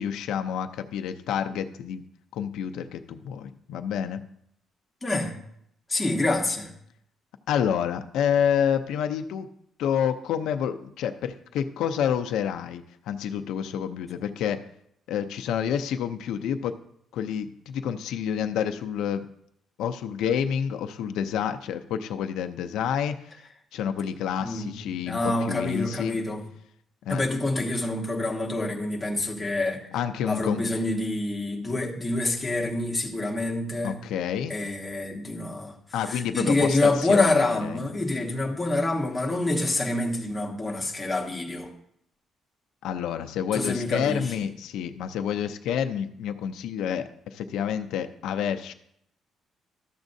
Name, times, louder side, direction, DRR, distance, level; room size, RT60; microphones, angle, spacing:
voice 1, 0.0-2.0 2.3-4.2 7.5-9.5 9.8-14.6 15.1-16.7 17.1-19.3 19.8-23.4 23.7-26.2 27.0-27.2 29.9-30.7 33.8-34.6 35.9-37.8 42.8-48.7, left 8 dB, 90° left, 7 dB, 0.5 m, -28 dB
voice 2, 5.0-5.4 5.9-6.7 24.4-26.4 27.1-29.9 30.3-34.0 34.5-35.8 36.1-41.7 43.5-44.2, left 2 dB, 10° left, -1 dB, 1.2 m, -27 dB
13.0 x 7.2 x 2.7 m, 0.72 s
cardioid pair, 160°, 0 cm